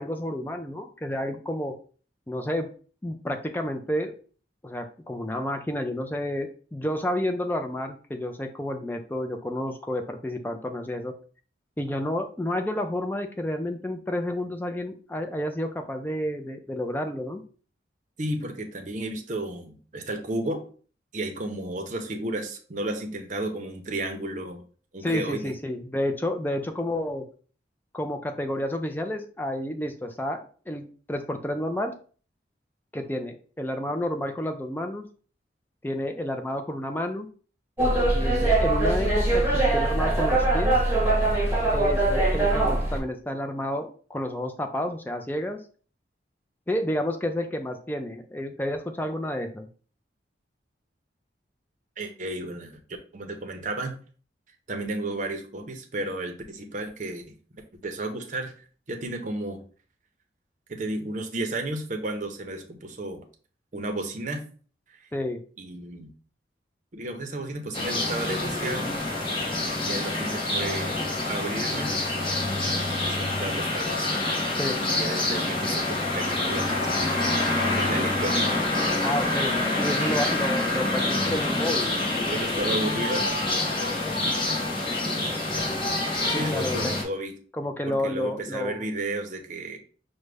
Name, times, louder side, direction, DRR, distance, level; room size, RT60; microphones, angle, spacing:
voice 1, 0.0-1.7 2.3-2.7 3.0-4.2 4.6-11.1 11.8-17.4 25.0-27.2 27.9-31.9 32.9-35.1 35.8-37.3 38.1-40.8 41.7-45.6 46.7-49.7 65.1-65.4 74.5-74.8 79.0-81.9 86.3-87.0 87.6-88.8, left 1 dB, 10° left, 5 dB, 0.4 m, -30 dB
voice 2, 18.2-20.6 21.1-24.6 24.9-25.5 52.0-52.8 53.1-53.9 54.7-57.3 57.7-58.5 58.9-59.6 60.7-63.2 63.7-64.4 64.9-65.0 65.6-66.1 66.9-69.0 69.5-71.0 71.3-71.9 72.6-74.1 74.8-77.3 77.6-78.6 80.2-80.5 81.2-82.0 82.3-83.3 86.3-87.4 87.9-89.8, right 2 dB, 45° right, 4 dB, 0.6 m, -33 dB
sound 1, 37.8-43.0, right 2 dB, 15° right, 0.9 m, -22 dB
sound 2, 67.7-87.0, left 2 dB, 30° left, 0.9 m, -26 dB
4.9 x 2.1 x 3.3 m, 0.42 s
head